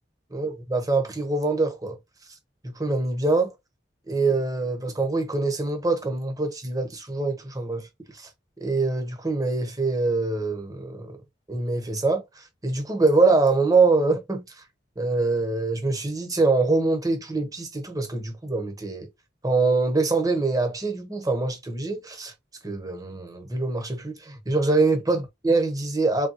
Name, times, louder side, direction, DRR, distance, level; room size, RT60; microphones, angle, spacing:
voice 1, 0.3-2.0 2.6-3.5 4.1-7.9 8.1-8.3 8.6-11.2 11.5-14.5 15.0-19.1 19.4-22.3 22.6-26.3, right 3 dB, 20° right, 1.0 m, -24 dB
3.9 x 3.5 x 2.9 m
head